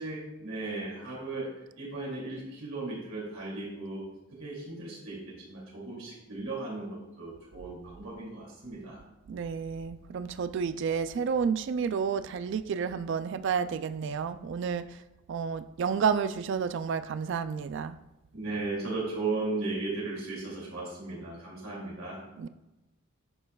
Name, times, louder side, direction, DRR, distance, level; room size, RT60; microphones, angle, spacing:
voice 1, 0.0-4.1 4.3-9.0 18.3-22.2, right 3 dB, 85° right, -5 dB, 2.6 m, -36 dB
voice 2, 9.3-15.0 15.3-18.0 22.4-22.5, right 6 dB, 60° right, 12 dB, 0.3 m, -30 dB
9.9 x 6.6 x 2.3 m, 0.97 s
head